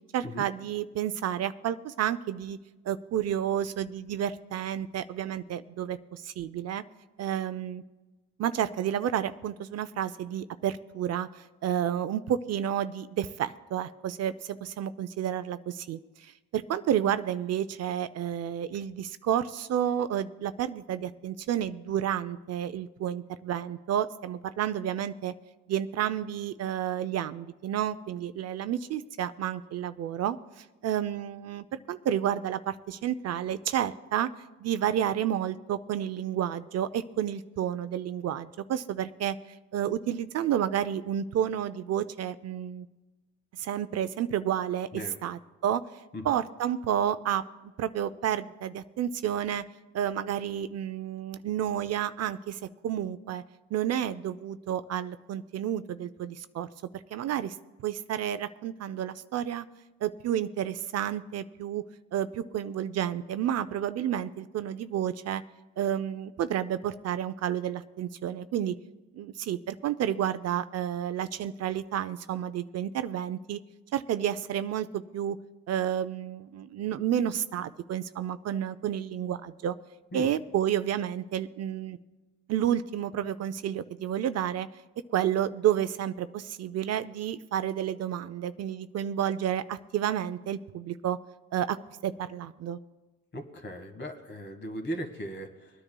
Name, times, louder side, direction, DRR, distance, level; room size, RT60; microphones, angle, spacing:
voice 1, 0.1-2.6 2.8-6.8 7.2-7.8 8.4-25.3 25.7-34.3 34.6-39.4 39.7-42.9 43.6-45.8 46.2-47.4 47.8-49.6 49.9-53.4 53.7-56.7 56.9-59.6 60.0-61.8 62.1-65.4 65.8-68.7 69.1-73.6 73.9-75.4 75.7-79.8 80.1-82.0 82.5-84.7 85.1-91.2 91.5-91.8 92.0-92.8, right 10 dB, 60° right, 13 dB, 0.5 m, -30 dB
voice 2, 93.3-95.7, equal, 35° left, 6 dB, 1.4 m, -37 dB
25.5 x 9.9 x 2.2 m, 1.2 s
cardioid pair, 90°, 30 cm